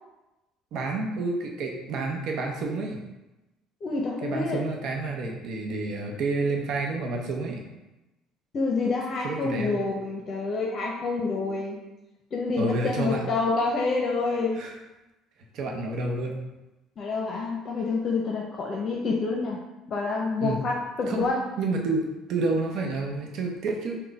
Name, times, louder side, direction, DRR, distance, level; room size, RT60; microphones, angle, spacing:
voice 1, 0.7-3.0 4.2-7.6 9.2-9.7 12.6-13.3 14.6-14.7 15.5-16.4 20.4-20.6 21.1-21.3 21.6-22.0 22.3-24.0, right 3 dB, 65° right, 1 dB, 0.7 m, -29 dB
voice 2, 3.8-4.7 8.5-11.8 12.3-14.6 17.0-19.6 19.9-21.4, left 3 dB, 50° left, 0 dB, 0.6 m, -27 dB
3.9 x 2.2 x 4.0 m, 1.0 s
supercardioid pair, 70°, 0 cm